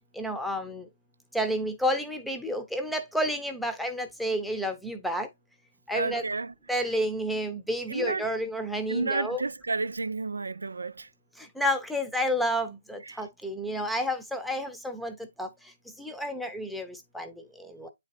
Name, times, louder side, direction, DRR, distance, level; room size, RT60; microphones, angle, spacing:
voice 1, 0.1-0.9 1.3-5.3 5.9-6.2 6.7-9.4 11.4-15.5 16.0-17.9, equal, ahead, 0.8 m, -30 dB
voice 2, 5.9-6.5 7.9-8.4 8.9-11.1 13.0-13.2, right 3 dB, 85° right, 0.5 m, -31 dB
8.9 x 4.2 x 2.6 m
hypercardioid pair, 150°, 0 cm